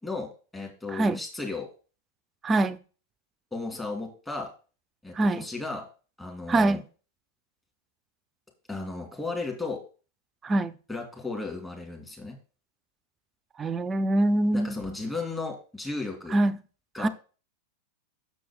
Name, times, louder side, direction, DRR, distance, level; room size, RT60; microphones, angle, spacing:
voice 1, 0.0-1.7 3.5-4.5 5.0-5.8 6.2-6.8 8.7-9.8 10.9-12.4 14.5-16.4 16.9-17.1, left 3 dB, 10° left, 2.6 m, -35 dB
voice 2, 2.4-2.8 5.1-5.5 6.5-6.8 10.4-10.7 13.6-14.8 16.3-16.6 17.0-17.1, right 2 dB, 20° right, 0.5 m, -24 dB
6.7 x 6.1 x 4.9 m
figure-of-eight pair, 90°, 0 cm